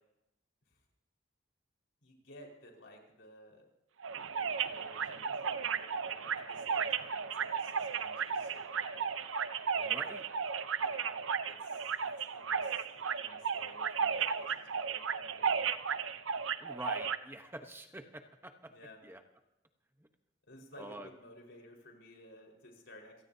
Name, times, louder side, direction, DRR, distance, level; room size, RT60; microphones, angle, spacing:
voice 1, 2.0-3.7 4.0-9.1 9.7-10.3 10.8-11.1 11.4-15.8 18.7-19.0 20.5-23.2, left 1 dB, 70° left, 0 dB, 4.8 m, -56 dB
sound 1, 4.0-17.2, right 6 dB, 90° right, 0.8 m, -34 dB
voice 2, 9.8-10.2 16.6-18.7 19.0-19.2 20.0-20.1 20.8-21.1, right 1 dB, 10° right, 6 dB, 1.0 m, -46 dB
28.0 x 17.5 x 2.8 m, 0.91 s
head